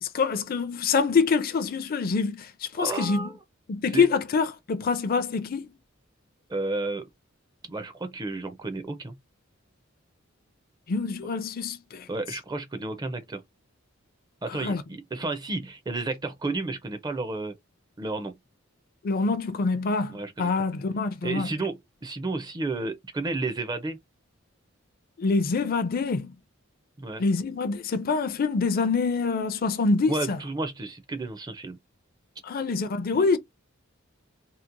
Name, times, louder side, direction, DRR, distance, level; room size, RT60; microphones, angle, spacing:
voice 1, 0.0-3.3 3.7-5.7 10.9-12.1 14.5-14.8 19.0-21.5 25.2-26.3 27.2-30.4 32.4-33.4, left 4 dB, 45° left, 0.4 m, -25 dB
voice 2, 2.8-3.3 3.9-4.1 6.5-7.1 7.7-9.2 12.1-13.4 14.4-17.5 18.0-18.3 20.1-20.5 21.2-24.0 27.0-27.2 30.1-31.8 33.1-33.2, right 3 dB, 20° right, 0.4 m, -32 dB
2.8 x 2.0 x 2.5 m
head